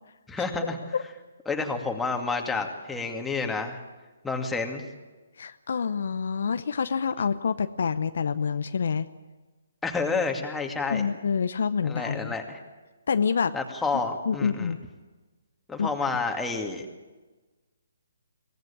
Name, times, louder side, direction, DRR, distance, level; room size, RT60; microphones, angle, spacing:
voice 1, 0.3-0.8 1.5-3.8 4.2-4.8 9.8-11.1 11.8-12.6 13.5-14.7 15.7-16.9, left 4 dB, 5° left, 2 dB, 2.3 m, -29 dB
voice 2, 5.4-9.1 10.9-12.3 13.1-13.6 14.3-14.8 15.8-16.1, left 6 dB, 65° left, 11 dB, 0.8 m, -27 dB
23.0 x 17.5 x 8.9 m, 1.2 s
figure-of-eight pair, 140°, 0 cm